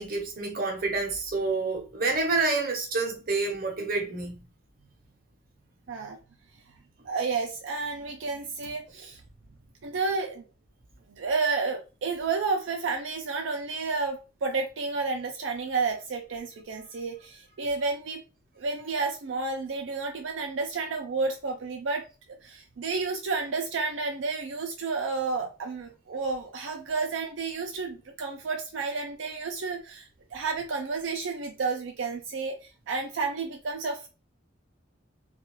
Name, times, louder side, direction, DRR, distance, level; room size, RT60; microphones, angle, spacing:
voice 1, 0.0-4.4, right 3 dB, 50° right, 0.7 m, -28 dB
voice 2, 7.0-9.2 9.8-10.4 11.1-18.2 18.6-22.0 22.4-34.1, right 4 dB, 80° right, 0.4 m, -31 dB
2.3 x 2.3 x 3.0 m
head